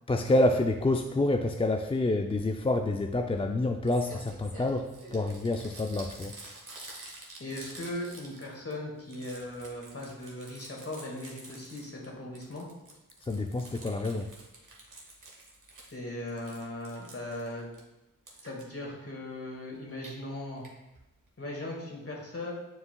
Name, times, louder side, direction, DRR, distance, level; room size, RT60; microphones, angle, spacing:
voice 1, 0.1-6.4 13.2-14.3, left 2 dB, 15° left, 5 dB, 0.3 m, -28 dB
Crumpling crinkling, 3.5-3.6 3.8-8.7 9.0-12.1 12.4-16.0 16.3-17.8 18.3-18.6 19.8-20.1 20.6-20.7 21.0-21.1 21.3-21.4, right 2 dB, 65° right, 1.6 m, -48 dB
voice 2, 7.4-12.7 15.9-17.7 18.4-20.6 21.4-22.5, left 1 dB, 45° left, -1 dB, 1.8 m, -38 dB
9.4 x 4.8 x 2.3 m, 0.98 s
wide cardioid pair, 65°, 34 cm